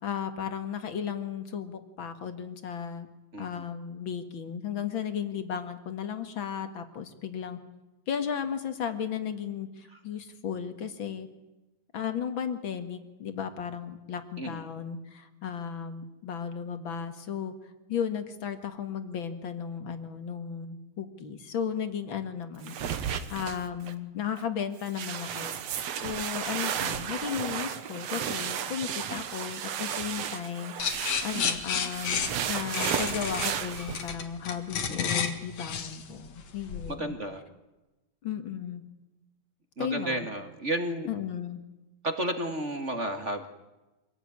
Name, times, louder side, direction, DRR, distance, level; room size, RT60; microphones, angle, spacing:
voice 1, 0.0-3.1 3.4-7.6 8.1-11.3 11.9-17.5 17.9-25.6 26.0-37.2 38.2-38.8 39.8-40.3 41.1-41.6, left 8 dB, 45° left, 9 dB, 2.3 m, -35 dB
voice 2, 14.4-14.7 34.7-35.1 36.9-37.4 39.8-41.1 42.0-43.5, right 1 dB, 30° right, 7 dB, 1.8 m, -32 dB
sound 1, 22.6-23.9 24.4-24.5 24.8-34.1, right 8 dB, 65° right, 2.3 m, -33 dB
sound 2, 30.8-36.9, left 7 dB, 70° left, 3.1 m, -32 dB
25.0 x 18.0 x 9.7 m, 1.0 s
omnidirectional pair, 3.3 m